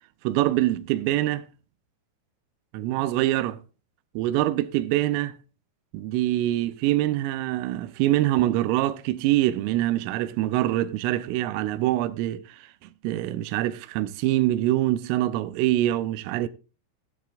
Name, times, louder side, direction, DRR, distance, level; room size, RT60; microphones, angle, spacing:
voice 1, 0.2-1.5 2.7-3.6 4.2-5.3 5.9-12.7 13.0-16.5, right 15 dB, 85° right, 3.3 m, -24 dB
15.5 x 10.5 x 2.5 m
omnidirectional pair, 5.7 m